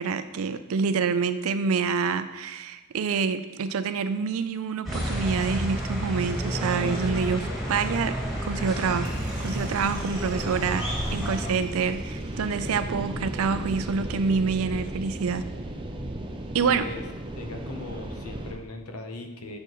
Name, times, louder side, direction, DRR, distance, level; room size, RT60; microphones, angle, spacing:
voice 1, 0.0-8.1 8.4-9.1 9.4-15.4 16.5-16.9, right 5 dB, 75° right, 11 dB, 0.4 m, -27 dB
sound 1, 4.8-11.5, equal, ahead, 1.9 m, -30 dB
sound 2, 7.9-18.5, right 1 dB, 20° right, 0.5 m, -36 dB
sound 3, 9.0-13.4, right 2 dB, 55° right, 0.9 m, -44 dB
voice 2, 16.7-17.0 17.4-19.6, left 2 dB, 85° left, 5 dB, 0.8 m, -38 dB
6.8 x 6.5 x 3.0 m, 1.1 s
head